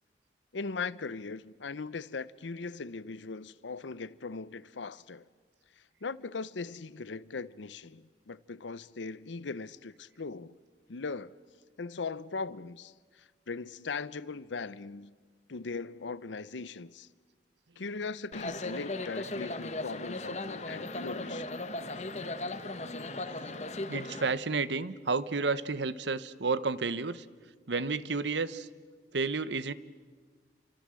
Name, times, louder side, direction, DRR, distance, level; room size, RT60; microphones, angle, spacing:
voice 1, 0.5-5.2 6.0-10.5 10.9-11.3 11.8-12.9 13.5-15.1 15.5-17.1 17.8-21.4, left 4 dB, 90° left, 0.7 m, -39 dB
sound 1, 18.3-24.3, left 2 dB, 40° left, 1.3 m, -37 dB
voice 2, 23.9-27.2 27.7-28.7 29.1-29.7, right 4 dB, 80° right, 0.9 m, -31 dB
29.5 x 24.5 x 7.6 m
head